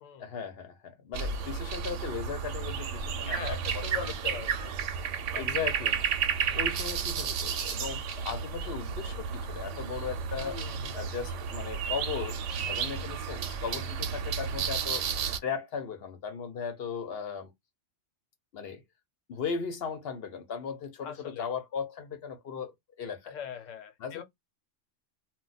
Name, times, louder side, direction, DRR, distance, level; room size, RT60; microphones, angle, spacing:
voice 1, 0.2-4.4 5.3-6.0 6.5-10.6 10.9-15.1 15.4-17.5 18.5-18.8 19.3-23.4 24.0-24.2, left 6 dB, 60° left, 0.8 m, -37 dB
sound 1, 1.1-15.4, right 7 dB, 75° right, 0.9 m, -32 dB
voice 2, 3.3-4.7 5.3-5.4 5.8-5.9 6.5-6.6 10.4-11.0 21.0-21.5 23.3-24.2, left 8 dB, 85° left, 1.1 m, -42 dB
2.2 x 2.2 x 3.9 m
omnidirectional pair, 1.3 m